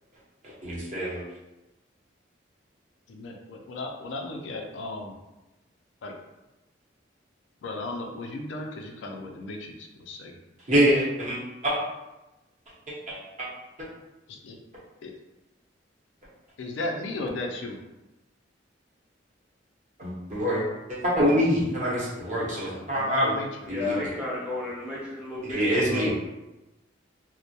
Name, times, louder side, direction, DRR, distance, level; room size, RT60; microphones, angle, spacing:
voice 1, 0.6-1.2 10.7-11.8 12.9-13.5 20.0-20.6 20.9-23.3 23.7-24.0 25.5-26.1, equal, 45° right, -6 dB, 0.8 m, -25 dB
voice 2, 3.1-5.2 6.0-6.2 7.6-10.4 14.3-14.6 15.0-15.1 16.6-17.8 22.7-23.5, left 2 dB, 80° left, 2 dB, 0.4 m, -35 dB
voice 3, 23.7-26.1, left 2 dB, 5° right, -6 dB, 0.6 m, -33 dB
2.2 x 2.0 x 2.7 m, 1.0 s
head